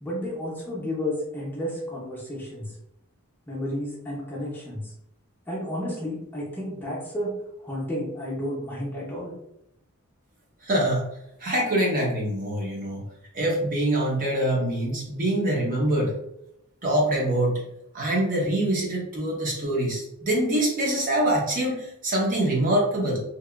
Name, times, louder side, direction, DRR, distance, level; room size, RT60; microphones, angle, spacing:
voice 1, 0.0-2.7 3.5-4.9 5.5-9.3, left 1 dB, 10° left, -6 dB, 0.6 m, -32 dB
voice 2, 10.6-11.0 11.4-13.0 13.3-16.1 16.8-17.6 17.9-23.2, right 1 dB, 40° right, -3 dB, 0.6 m, -24 dB
2.8 x 2.3 x 2.2 m, 0.79 s
head